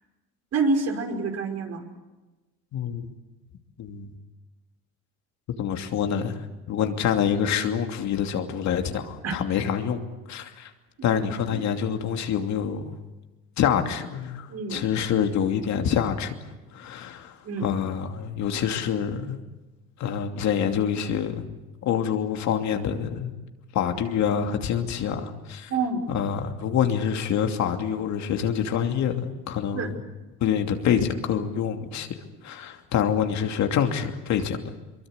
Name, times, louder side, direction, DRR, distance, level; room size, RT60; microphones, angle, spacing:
voice 1, 0.5-1.8 9.2-9.4 11.0-11.6 14.5-14.8 17.4-17.7 25.7-26.0 29.7-29.9, right 3 dB, 55° right, 4 dB, 5.4 m, -28 dB
voice 2, 2.7-3.0 3.8-4.1 5.6-6.4 6.7-10.0 10.3-10.7 11.0-12.9 13.6-16.3 16.7-17.4 17.6-19.4 20.0-21.5 21.8-23.3 23.7-25.7 26.1-30.0 30.4-32.1 32.4-34.6, left 8 dB, 65° left, 5 dB, 2.8 m, -26 dB
23.5 x 23.0 x 8.2 m, 1.1 s
supercardioid pair, 85°, 31 cm